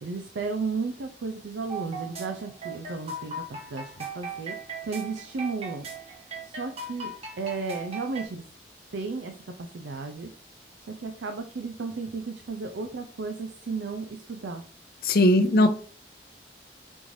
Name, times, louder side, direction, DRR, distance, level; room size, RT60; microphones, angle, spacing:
voice 1, 0.0-5.9 6.4-8.4 8.9-9.3 9.6-10.3 10.9-14.6 15.4-15.7, right 4 dB, 85° right, 5 dB, 0.5 m, -34 dB
sound 1, 1.7-8.3, right 3 dB, 35° right, 1.0 m, -38 dB
voice 2, 15.0-15.7, left 1 dB, 55° left, 6 dB, 0.6 m, -19 dB
5.3 x 3.1 x 2.6 m, 0.42 s
head